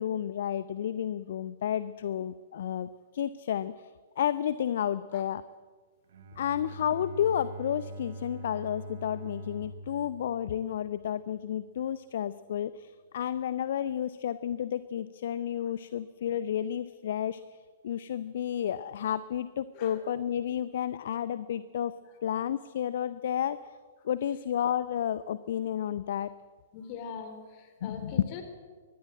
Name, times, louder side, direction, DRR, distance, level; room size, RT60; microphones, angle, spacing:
voice 1, 0.0-5.4 6.4-17.4 17.8-21.9 22.2-23.8 24.0-26.3 27.8-28.1, left 10 dB, 50° left, 16 dB, 0.7 m, -31 dB
Bowed string instrument, 6.1-11.3, right 1 dB, 55° right, 3.8 m, -44 dB
voice 2, 26.7-28.4, left 6 dB, 35° left, 7 dB, 3.9 m, -43 dB
23.5 x 19.0 x 7.7 m, 1.5 s
figure-of-eight pair, 110°, 0 cm